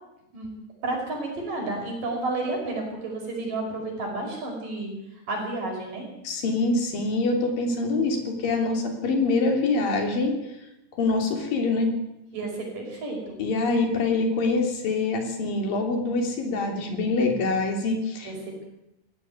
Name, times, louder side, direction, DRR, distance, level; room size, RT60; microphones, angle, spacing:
voice 1, 0.8-4.9 5.3-6.1 12.3-13.4 18.2-18.7, right 2 dB, 55° right, 1 dB, 6.9 m, -31 dB
voice 2, 6.2-10.4 11.0-11.9 13.4-18.3, left 3 dB, 60° left, 3 dB, 4.7 m, -25 dB
18.5 x 15.0 x 9.4 m, 0.90 s
omnidirectional pair, 4.6 m